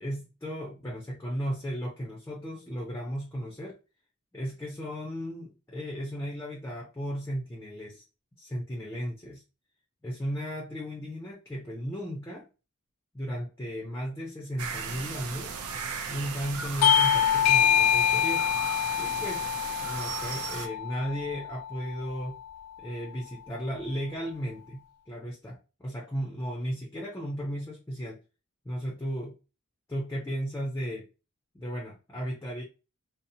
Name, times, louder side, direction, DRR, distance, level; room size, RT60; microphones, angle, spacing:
voice 1, 0.0-3.8 4.3-8.0 8.4-9.4 10.0-12.5 13.1-15.6 16.1-18.5 19.0-19.5 19.8-22.4 22.8-28.2 28.6-29.4 29.9-31.1 31.5-32.6, equal, 10° left, 0.4 m, -35 dB
sound 1, 14.6-20.7, right 5 dB, 80° right, 0.4 m, -36 dB
Bell / Doorbell, 16.8-21.9, left 9 dB, 80° left, 0.3 m, -25 dB
2.7 x 2.0 x 2.6 m
head